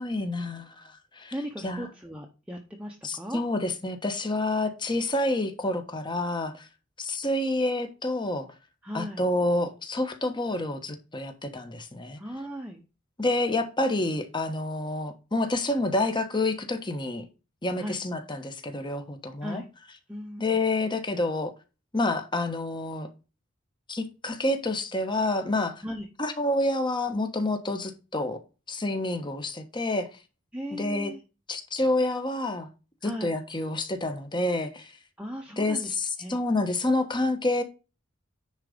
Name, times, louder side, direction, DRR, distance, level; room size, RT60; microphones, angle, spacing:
voice 1, 0.0-1.3 1.6-1.9 3.0-6.7 7.0-8.5 8.9-12.2 13.2-17.2 17.6-19.6 20.4-21.5 21.9-23.1 23.9-25.8 26.2-28.4 28.7-30.1 30.7-31.1 31.5-32.7 33.0-34.9 35.6-37.6, left 2 dB, 25° left, 1.1 m, -28 dB
voice 2, 1.3-3.4 8.8-9.2 12.2-12.8 17.8-18.0 19.4-19.7 20.1-20.6 25.8-26.1 30.5-31.2 33.0-33.3 35.2-36.4, equal, 5° right, 0.9 m, -37 dB
10.0 x 4.0 x 5.1 m
head